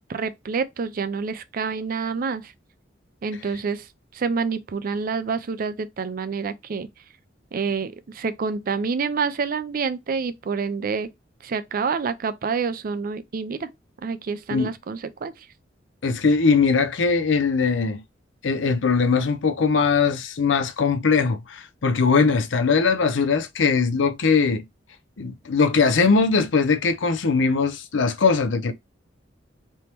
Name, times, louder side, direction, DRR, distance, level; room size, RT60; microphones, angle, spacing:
voice 1, 0.1-2.5 3.2-3.9 4.1-6.9 7.5-11.1 11.4-13.7 14.0-15.5, right 5 dB, 50° right, 0.4 m, -27 dB
voice 2, 16.0-18.0 18.4-24.6 25.2-28.7, left 4 dB, 75° left, 0.5 m, -20 dB
3.5 x 2.9 x 2.9 m
head